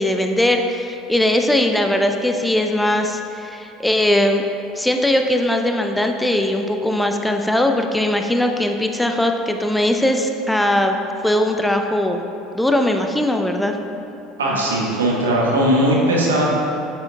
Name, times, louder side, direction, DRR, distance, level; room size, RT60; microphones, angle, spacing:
voice 1, 0.0-4.4 4.8-10.9 11.2-12.2 12.5-13.7, left 1 dB, 5° left, 4 dB, 0.5 m, -19 dB
voice 2, 14.4-16.5, right 1 dB, 80° right, -3 dB, 1.2 m, -18 dB
8.9 x 8.0 x 2.3 m, 2.8 s
figure-of-eight pair, 65°, 0 cm